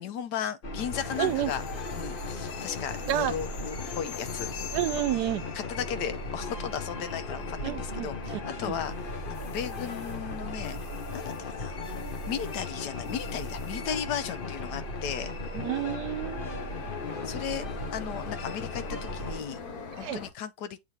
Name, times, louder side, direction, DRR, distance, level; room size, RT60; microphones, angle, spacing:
voice 1, 0.0-1.6 2.0-4.5 4.9-5.1 5.5-10.8 11.1-11.8 12.3-15.3 17.2-17.7 17.9-19.6 20.0-20.8, left 8 dB, 80° left, 1.3 m, -36 dB
sound 1, 0.6-19.4, left 2 dB, 40° left, 1.0 m, -37 dB
sound 2, 0.9-20.3, left 5 dB, 65° left, 1.6 m, -44 dB
voice 2, 1.2-1.5 3.1-3.3 4.7-5.4 7.6-8.7 15.5-16.5 20.0-20.2, right 12 dB, 80° right, 1.2 m, -30 dB
8.0 x 3.1 x 4.2 m
omnidirectional pair, 1.8 m